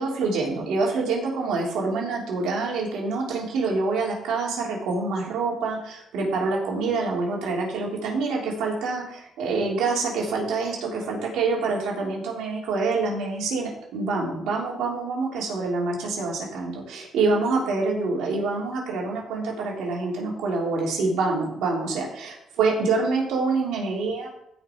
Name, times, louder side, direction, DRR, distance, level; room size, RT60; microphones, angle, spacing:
voice 1, 0.0-24.3, right 3 dB, 85° right, -2 dB, 3.5 m, -26 dB
16.0 x 5.9 x 4.6 m, 0.79 s
cardioid pair, 90°, 0 cm